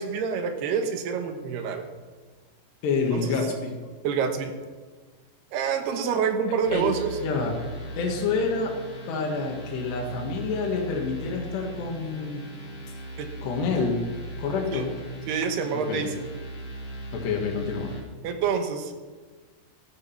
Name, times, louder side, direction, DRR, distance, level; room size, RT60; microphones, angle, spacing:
voice 1, 0.0-1.9 3.1-3.3 4.0-4.5 5.5-7.1 13.2-13.3 14.7-14.9 15.3-16.1 18.2-18.9, right 6 dB, 75° right, 6 dB, 3.1 m, -27 dB
voice 2, 2.8-3.7 6.7-6.9 7.2-7.5 8.0-8.7 9.1-12.5 13.4-14.0 14.4-14.9 15.7-16.1 17.1-17.9, left 4 dB, 80° left, 0 dB, 3.9 m, -28 dB
sound 1, 6.6-18.0, right 1 dB, 40° left, 2.3 m, -39 dB
14.5 x 12.5 x 5.9 m, 1.4 s
omnidirectional pair, 4.9 m